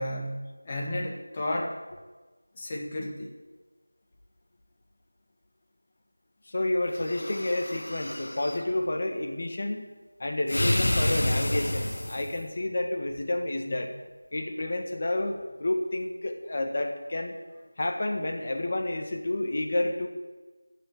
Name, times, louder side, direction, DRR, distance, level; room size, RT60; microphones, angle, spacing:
voice 1, 0.0-1.8 2.5-3.3 13.7-13.8, left 1 dB, 25° left, -1 dB, 1.7 m, -33 dB
voice 2, 6.5-9.8 10.2-13.9 14.3-17.3 17.8-20.1, left 1 dB, 40° left, 3 dB, 1.6 m, -30 dB
sound 1, 6.9-8.6 10.5-12.4, left 1 dB, 65° left, 1.5 m, -29 dB
12.0 x 6.9 x 9.0 m, 1.3 s
figure-of-eight pair, 170°, 0 cm